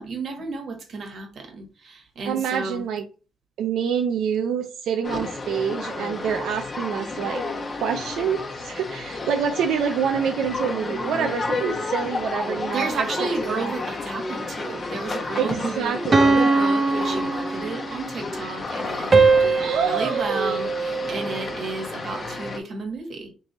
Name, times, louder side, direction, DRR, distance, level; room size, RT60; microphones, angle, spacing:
voice 1, 0.0-2.8 12.7-23.3, right 4 dB, 55° right, 1.4 m, -32 dB
voice 2, 2.3-3.0 3.6-7.4 7.8-8.4 8.6-13.1 13.4-13.7 15.3-16.4 19.6-20.6, right 7 dB, 80° right, 0.4 m, -26 dB
sound 1, 5.0-22.6, left 3 dB, 40° left, 1.0 m, -31 dB
sound 2, 16.1-18.1 19.1-21.5, right 3 dB, 35° right, 0.7 m, -21 dB
3.3 x 3.2 x 4.0 m
cardioid pair, 90°, 0 cm